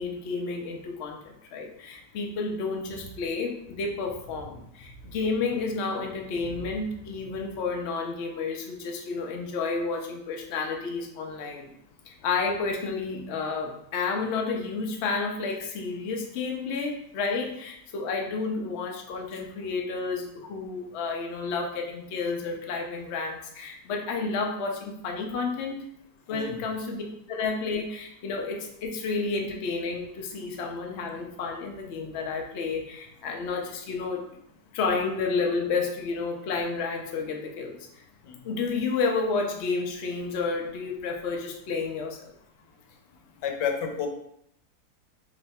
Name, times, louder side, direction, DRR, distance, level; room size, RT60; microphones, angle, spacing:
voice 1, 0.0-11.7 12.1-25.8 26.3-27.0 27.3-34.2 34.7-37.8 38.4-42.3, left 4 dB, 60° left, 1 dB, 0.7 m, -31 dB
voice 2, 43.4-44.1, left 7 dB, 85° left, 4 dB, 1.3 m, -31 dB
3.3 x 2.9 x 4.1 m, 0.74 s
omnidirectional pair, 1.8 m